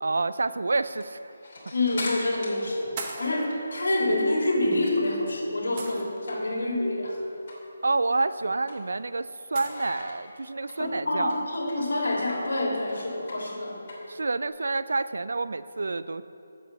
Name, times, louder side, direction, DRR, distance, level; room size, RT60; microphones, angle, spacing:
voice 1, 0.0-1.3 7.8-11.5 14.1-16.2, right 3 dB, 75° right, 14 dB, 0.4 m, -28 dB
sound 1, 0.8-5.3 5.6-6.8 7.1-7.2 7.5-7.7 8.1-9.3 9.7-14.5, left 2 dB, 50° left, 2.9 m, -42 dB
voice 2, 1.7-2.9 3.2-7.2 10.8-13.8, left 1 dB, 80° left, -1 dB, 2.9 m, -27 dB
sound 2, 2.2-2.4 3.0-3.5 4.8-5.0 5.8-6.4 8.3-8.4 9.5-9.9, right 4 dB, 30° right, 1.1 m, -38 dB
9.6 x 7.2 x 6.8 m, 2.7 s
figure-of-eight pair, 165°, 0 cm